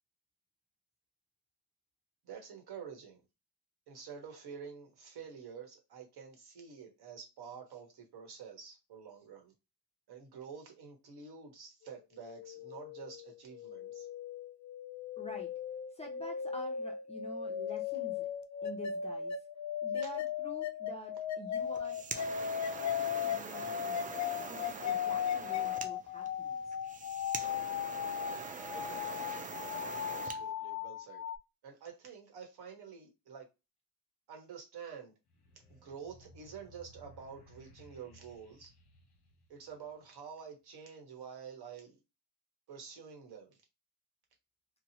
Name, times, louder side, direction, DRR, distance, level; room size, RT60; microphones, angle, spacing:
voice 1, 2.2-3.2 3.9-9.5 10.1-14.1 28.7-29.3 30.1-31.2 31.6-33.5 34.3-35.1 35.7-38.7 39.5-42.0 42.7-43.6, right 6 dB, 55° right, 1.3 m, -49 dB
sound 1, 12.2-31.4, left 8 dB, 40° left, 0.5 m, -37 dB
voice 2, 15.2-15.5 15.9-18.3 18.6-19.4 19.8-22.0 22.7-26.7, equal, 15° left, 0.8 m, -48 dB
sound 2, 21.6-30.4, right 5 dB, 20° right, 0.3 m, -44 dB
sound 3, 35.3-40.2, equal, 55° left, 1.1 m, -60 dB
2.8 x 2.3 x 2.8 m
cardioid pair, 100°, 46 cm